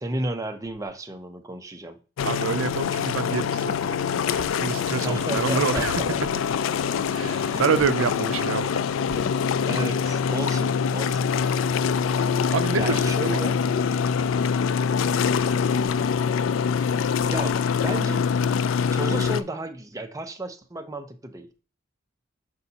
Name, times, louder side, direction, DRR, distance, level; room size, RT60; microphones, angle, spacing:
voice 1, 0.0-2.0 5.0-6.2 7.4-7.7 9.7-11.3 12.7-13.6 17.3-18.6 18.9-21.6, right 1 dB, 15° right, 0.6 m, -33 dB
sound 1, 2.2-19.4, left 6 dB, 80° left, 0.3 m, -24 dB
voice 2, 2.2-6.2 7.1-9.2 12.5-13.4, right 6 dB, 90° right, 0.4 m, -28 dB
8.0 x 5.4 x 2.8 m
head